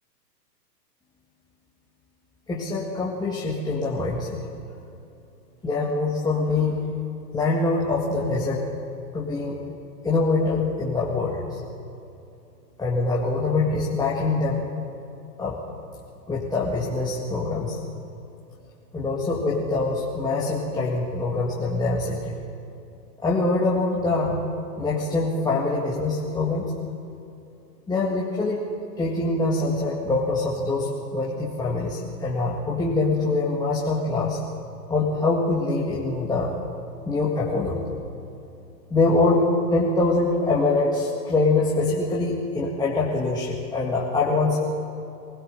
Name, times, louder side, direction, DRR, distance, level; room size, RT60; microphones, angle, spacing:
voice 1, 2.5-4.4 5.6-6.8 7.3-8.6 9.1-9.6 10.0-11.6 12.8-14.7 15.4-15.6 16.3-17.8 18.9-22.4 23.2-24.5 24.8-26.7 27.9-28.6 29.0-34.4 34.9-36.5 37.0-37.9 38.9-44.7, left 3 dB, 10° left, -5 dB, 1.8 m, -24 dB
23.0 x 17.0 x 6.8 m, 2.8 s
hypercardioid pair, 130°, 49 cm